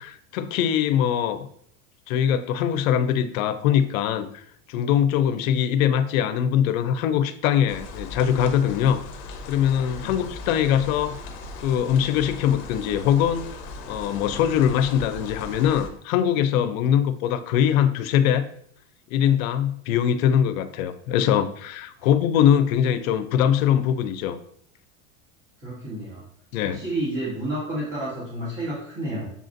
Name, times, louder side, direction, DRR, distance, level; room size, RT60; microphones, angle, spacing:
voice 1, 0.0-1.5 2.1-4.4 4.7-9.0 9.5-11.2 11.6-13.5 13.9-18.5 19.1-24.4 26.5-26.8, left 9 dB, 85° left, 11 dB, 0.6 m, -22 dB
sound 1, 7.7-15.9, left 3 dB, 50° left, 0.8 m, -38 dB
voice 2, 25.6-26.2 26.6-29.3, right 1 dB, 30° right, -8 dB, 1.7 m, -30 dB
6.9 x 2.4 x 2.6 m, 0.69 s
supercardioid pair, 140°, 40 cm